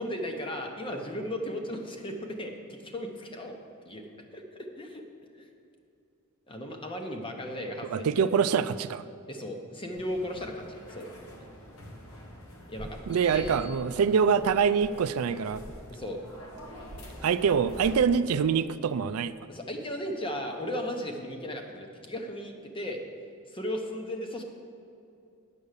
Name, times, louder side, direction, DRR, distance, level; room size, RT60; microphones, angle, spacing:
voice 1, 0.0-3.5 3.9-4.0 4.3-5.0 5.4-5.5 6.5-8.3 9.3-11.1 12.7-13.0 13.3-13.6 15.9-16.2 19.5-23.0 23.5-24.4, left 1 dB, 25° left, 3 dB, 1.0 m, -36 dB
voice 2, 7.9-9.0 13.1-15.6 17.2-19.3, right 6 dB, 80° right, 14 dB, 0.4 m, -25 dB
sound 1, 9.9-18.0, equal, 75° left, 1.5 m, -45 dB
9.1 x 7.0 x 6.6 m, 2.7 s
head